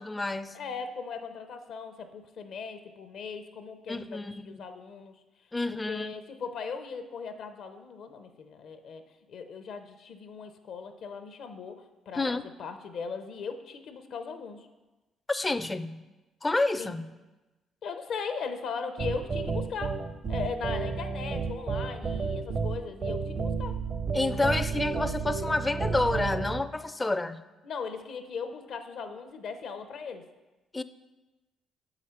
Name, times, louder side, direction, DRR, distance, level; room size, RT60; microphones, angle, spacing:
voice 1, 0.0-0.6 3.9-4.6 5.5-6.1 12.1-12.4 15.3-16.1 16.4-17.1 24.1-27.4 30.7-30.8, left 2 dB, 20° left, 12 dB, 0.4 m, -29 dB
voice 2, 0.5-5.2 5.7-9.0 9.3-14.7 16.8-16.9 17.8-20.0 20.3-23.8 27.6-30.2, left 5 dB, 65° left, 8 dB, 0.6 m, -38 dB
sound 1, 19.0-26.6, right 4 dB, 40° right, 0.6 m, -31 dB
6.3 x 4.9 x 5.7 m, 1.1 s
cardioid pair, 85°, 0 cm